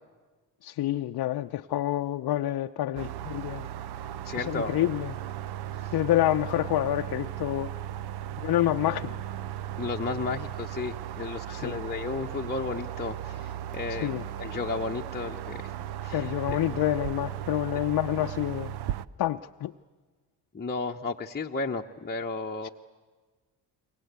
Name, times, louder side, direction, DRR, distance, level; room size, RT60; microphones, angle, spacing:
voice 1, 0.6-3.7 4.4-5.1 5.9-7.7 8.4-9.1 11.6-11.8 14.0-14.2 16.1-18.7 19.2-19.7 22.6-22.7, left 13 dB, 60° left, 6 dB, 0.7 m, -28 dB
sound 1, 3.0-19.1, right 12 dB, 65° right, 0.7 m, -36 dB
voice 2, 4.2-4.7 5.7-5.9 9.8-15.8 16.0-16.6 20.5-22.7, left 4 dB, 25° left, 0 dB, 1.0 m, -33 dB
29.0 x 23.0 x 8.2 m, 1.4 s
supercardioid pair, 60°, 43 cm